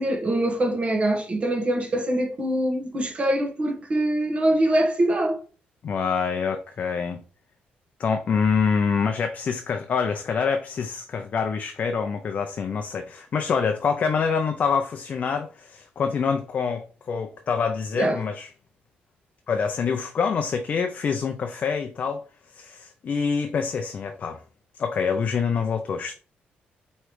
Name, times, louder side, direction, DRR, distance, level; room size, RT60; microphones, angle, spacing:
voice 1, 0.0-5.4 17.9-18.2, right 1 dB, 35° right, 1.3 m, -23 dB
voice 2, 5.8-7.2 8.0-18.5 19.5-22.2 22.5-24.4 24.7-26.1, left 6 dB, 45° left, 0.5 m, -26 dB
4.8 x 3.2 x 3.0 m
cardioid pair, 125°, 4 cm